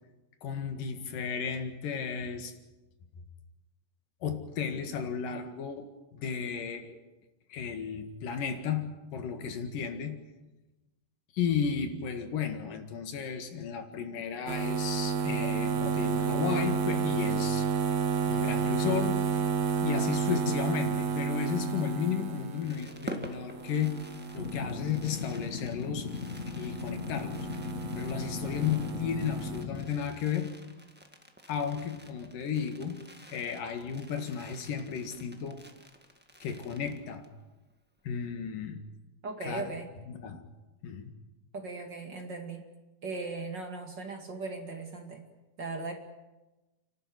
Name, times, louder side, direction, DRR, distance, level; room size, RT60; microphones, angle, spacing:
voice 1, 0.4-2.5 4.2-7.0 7.5-10.2 11.3-17.7 18.3-19.2 19.8-24.0 24.3-26.1 26.5-27.5 28.0-30.6 31.5-35.6 36.4-37.3 38.1-38.8 39.4-39.7 40.1-40.4 40.8-41.1, left 7 dB, 85° left, 7 dB, 3.6 m, -34 dB
sound 1, 14.5-25.7 26.0-29.6, right 6 dB, 55° right, 2.6 m, -31 dB
Fireworks, 22.2-37.4 37.7-37.8 38.0-38.3, equal, 15° right, 0.4 m, -49 dB
sound 2, 24.4-29.9, left 5 dB, 60° left, 0.8 m, -38 dB
voice 2, 39.2-39.9 41.5-42.6 43.0-45.2 45.6-45.9, right 3 dB, 35° right, 3 dB, 2.5 m, -38 dB
30.0 x 12.5 x 9.6 m, 1.1 s
omnidirectional pair, 3.7 m